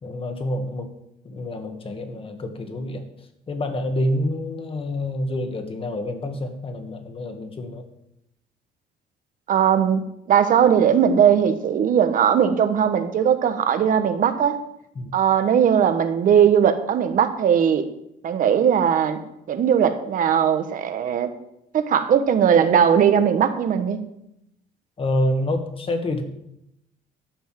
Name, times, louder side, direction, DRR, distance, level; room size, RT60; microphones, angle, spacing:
voice 1, 0.0-0.9 1.2-3.1 3.5-7.8 15.0-15.2 25.0-26.2, left 1 dB, 35° left, 6 dB, 1.9 m, -27 dB
voice 2, 9.5-14.6 15.1-17.8 18.2-19.2 19.5-21.3 21.7-24.0, right 8 dB, 55° right, 9 dB, 1.3 m, -19 dB
12.0 x 5.6 x 7.6 m, 0.81 s
cardioid pair, 105°, 16 cm